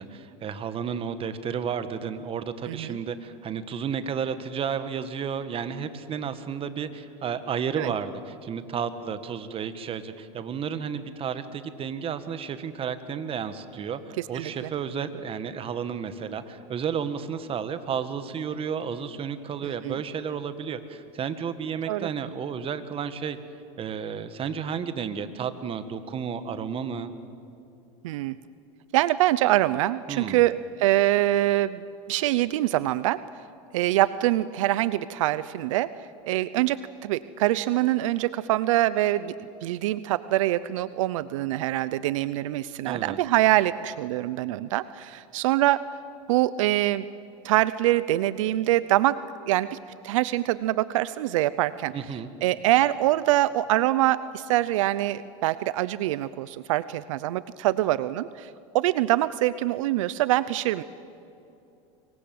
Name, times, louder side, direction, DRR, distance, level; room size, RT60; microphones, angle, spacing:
voice 1, 0.0-23.4 23.8-27.1 30.1-30.4 42.9-43.2 51.9-52.3, right 7 dB, 35° right, 11 dB, 1.8 m, -32 dB
voice 2, 2.7-3.0 7.8-7.9 14.2-14.7 19.8-20.0 21.9-22.1 28.0-28.4 28.9-33.2 33.7-35.9 36.2-39.3 39.6-45.9 46.3-47.1 47.4-49.8 50.0-51.9 52.4-60.8, right 15 dB, 80° right, 17 dB, 0.7 m, -24 dB
25.5 x 23.0 x 7.9 m, 2.6 s
supercardioid pair, 105°, 16 cm